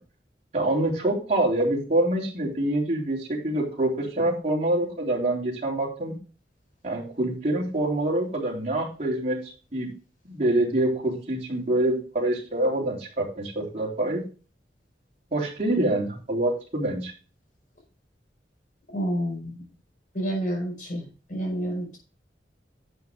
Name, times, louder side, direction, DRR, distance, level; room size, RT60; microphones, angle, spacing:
voice 1, 0.5-6.2 6.8-9.4 9.7-9.9 10.2-14.2 15.3-17.1, right 1 dB, 40° right, -3 dB, 3.7 m, -25 dB
voice 2, 18.9-19.7 20.1-22.0, equal, 50° left, 1 dB, 5.0 m, -29 dB
11.0 x 7.8 x 3.7 m, 0.35 s
head